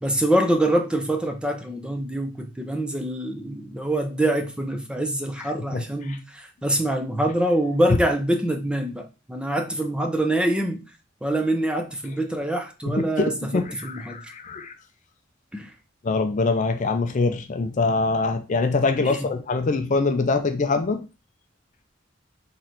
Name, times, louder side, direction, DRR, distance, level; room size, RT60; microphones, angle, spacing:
voice 1, 0.0-10.8 11.2-14.3 15.5-15.7 19.0-19.2, right 1 dB, 5° right, 0.6 m, -25 dB
voice 2, 5.4-6.2 12.8-14.7 16.0-21.1, left 3 dB, 40° left, 0.4 m, -24 dB
4.0 x 3.1 x 4.2 m
head